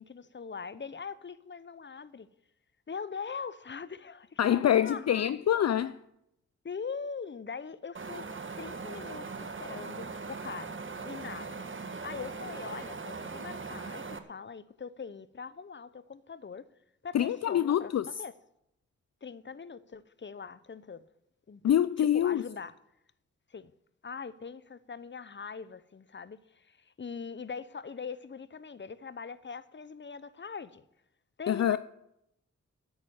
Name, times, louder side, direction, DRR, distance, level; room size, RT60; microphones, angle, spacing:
voice 1, 0.0-2.3 2.9-5.4 6.6-8.3 8.5-11.6 12.0-16.7 17.0-18.3 19.2-21.0 21.5-21.6 22.0-22.7 23.5-23.7 24.0-30.8 31.4-31.8, left 5 dB, 35° left, 0.8 m, -42 dB
voice 2, 4.4-6.0 17.1-18.1 21.6-22.4 31.5-31.8, left 10 dB, 55° left, 0.5 m, -25 dB
Wind, 7.9-14.2, right 4 dB, 40° right, 1.3 m, -40 dB
9.7 x 8.8 x 8.7 m
cardioid pair, 45°, 31 cm